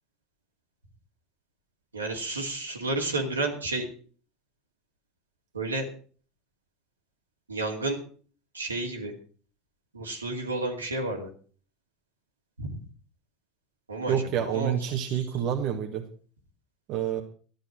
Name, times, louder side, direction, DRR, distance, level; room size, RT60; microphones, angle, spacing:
voice 1, 1.9-3.9 5.5-5.9 7.5-8.0 8.5-9.1 9.9-11.3 12.6-12.8 13.9-15.2, right 2 dB, 85° right, 2 dB, 2.4 m, -31 dB
voice 2, 14.1-16.1 16.9-17.2, right 9 dB, 50° right, 4 dB, 1.6 m, -28 dB
13.5 x 10.0 x 6.1 m, 0.42 s
figure-of-eight pair, 75°, 0 cm